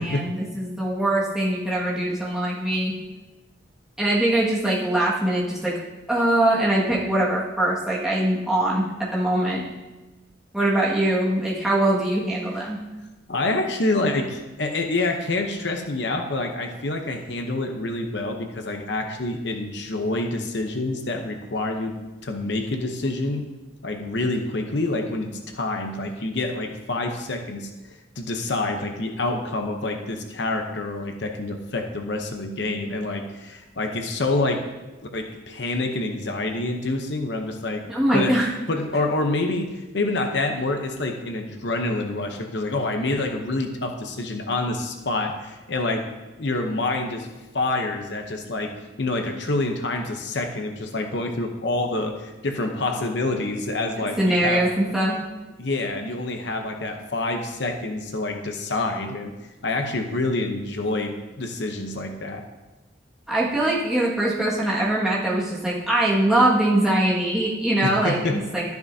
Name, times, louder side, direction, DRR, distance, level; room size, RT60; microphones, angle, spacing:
voice 1, 0.0-2.9 4.0-5.7 6.1-8.8 9.1-9.6 10.5-12.8 37.9-38.5 54.0-55.2 63.3-68.6, right 1 dB, 5° right, -7 dB, 1.9 m, -22 dB
voice 2, 13.3-22.0 22.2-23.5 23.8-27.7 28.2-34.7 35.1-37.8 38.1-38.4 38.7-46.1 46.4-47.3 47.5-54.7 55.6-59.3 59.6-62.4 67.8-68.4, left 2 dB, 65° left, 4 dB, 0.8 m, -27 dB
12.0 x 10.5 x 2.8 m, 1.1 s
head